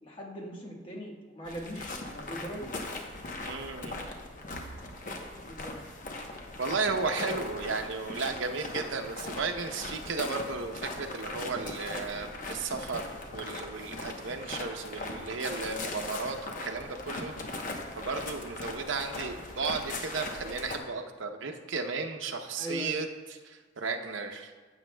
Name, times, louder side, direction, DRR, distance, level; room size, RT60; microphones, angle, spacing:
voice 1, 0.0-2.7 5.5-5.8 22.5-23.0, equal, 25° left, -2 dB, 1.3 m, -40 dB
sound 1, 1.4-20.8, left 2 dB, 45° left, 0.9 m, -39 dB
voice 2, 3.4-4.0 6.6-17.3 18.0-23.1 23.4-24.5, right 4 dB, 85° right, 5 dB, 0.8 m, -34 dB
15.5 x 7.1 x 2.2 m, 1.4 s
head